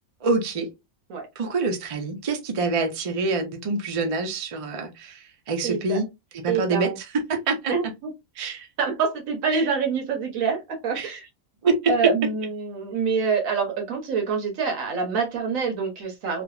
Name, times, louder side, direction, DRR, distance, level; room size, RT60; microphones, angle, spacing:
voice 1, 0.2-0.7 1.4-6.1 6.4-6.9 7.3-7.7 8.4-8.7 9.5-9.6 11.0-11.1 11.6-11.9, right 3 dB, 50° right, 0.4 m, -26 dB
voice 2, 5.6-6.0 6.5-7.0 7.7-8.1 8.8-11.3 11.9-16.4, right 5 dB, 80° right, 1.3 m, -26 dB
3.3 x 2.0 x 2.3 m
omnidirectional pair, 1.4 m